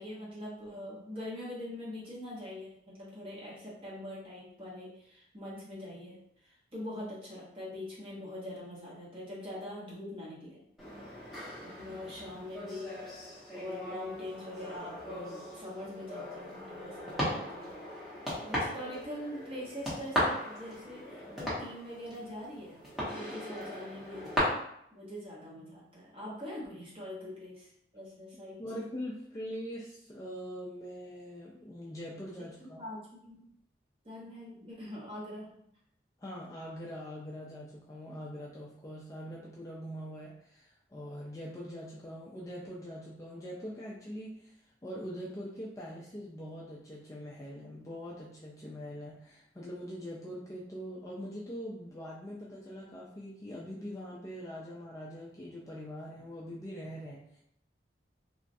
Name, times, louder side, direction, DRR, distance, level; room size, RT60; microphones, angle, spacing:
voice 1, 0.0-10.6 11.6-17.8 18.4-22.8 23.1-24.4 24.9-28.6 32.4-33.5 34.0-35.7, left 1 dB, 30° right, -6 dB, 0.9 m, -43 dB
sound 1, 10.8-24.4, equal, ahead, 0.9 m, -38 dB
voice 2, 28.6-32.8 36.2-57.4, equal, 15° left, -5 dB, 0.3 m, -43 dB
3.0 x 2.3 x 2.6 m, 0.72 s
head